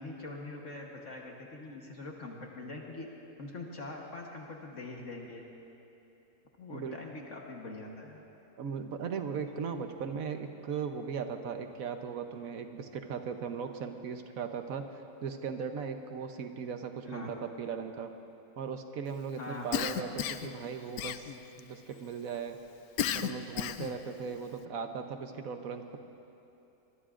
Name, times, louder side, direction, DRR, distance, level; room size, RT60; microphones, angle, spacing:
voice 1, 0.0-3.1 3.4-5.4 6.6-8.2 17.1-17.3 19.4-20.1, left 2 dB, 55° left, -1 dB, 1.6 m, -43 dB
voice 2, 8.6-18.1 18.6-22.6 23.1-26.0, right 6 dB, 65° right, 6 dB, 1.3 m, -38 dB
Cough, 19.7-20.5 21.0-21.6 23.0-24.0, left 10 dB, 75° left, 1.0 m, -33 dB
24.0 x 22.5 x 2.5 m, 3.0 s
omnidirectional pair, 1.6 m